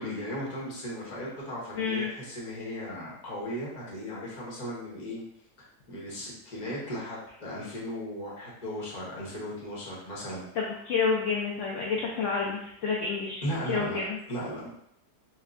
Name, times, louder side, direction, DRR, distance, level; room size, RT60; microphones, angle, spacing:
voice 1, 0.0-5.2 5.6-10.5 13.4-14.0 14.3-14.7, equal, 35° left, -5 dB, 0.8 m, -36 dB
voice 2, 1.8-2.1 10.5-14.2, left 5 dB, 70° left, -3 dB, 0.7 m, -29 dB
4.3 x 2.2 x 2.4 m, 0.75 s
omnidirectional pair, 1.7 m